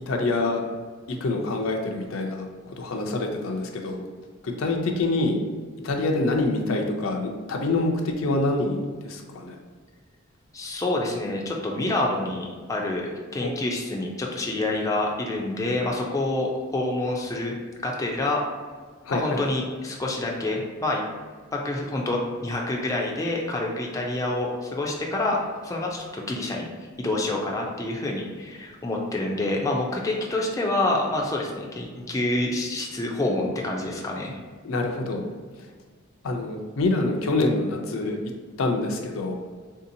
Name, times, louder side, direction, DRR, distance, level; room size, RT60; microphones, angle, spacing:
voice 1, 0.1-0.6 1.1-4.1 4.4-5.4 5.8-9.6 13.4-13.5 19.0-19.5 34.6-35.2 36.2-38.2 38.6-39.4, left 2 dB, 85° left, 2 dB, 0.5 m, -26 dB
voice 2, 10.5-17.6 17.8-18.4 19.1-21.0 21.5-26.7 27.0-34.4, left 2 dB, 15° left, -1 dB, 0.4 m, -27 dB
3.6 x 2.8 x 2.6 m, 1.5 s
head